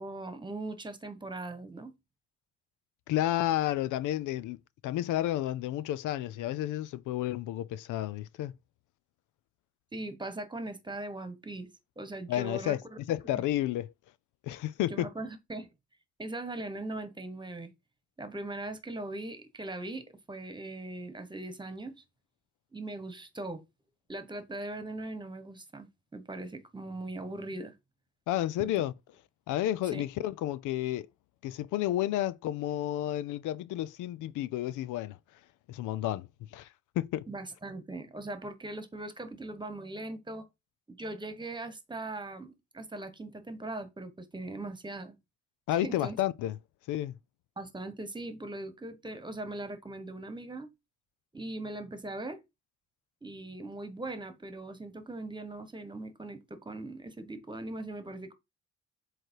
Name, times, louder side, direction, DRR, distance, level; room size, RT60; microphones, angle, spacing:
voice 1, 0.0-1.9 9.9-11.7 12.0-13.0 14.9-15.7 16.2-17.7 18.2-22.0 22.7-23.6 24.1-27.7 28.6-28.7 29.9-30.0 37.3-40.5 40.9-45.2 45.7-46.2 47.6-50.7 51.3-52.4 53.2-58.3, right 2 dB, 15° right, 1.3 m, -40 dB
voice 2, 3.1-8.5 12.3-12.8 13.1-13.9 14.4-15.1 28.3-28.9 29.5-31.1 31.4-35.2 35.7-36.7 37.0-37.3 45.7-46.6 46.9-47.1, left 13 dB, 85° left, 0.5 m, -31 dB
7.7 x 3.1 x 4.5 m
cardioid pair, 90°, 30 cm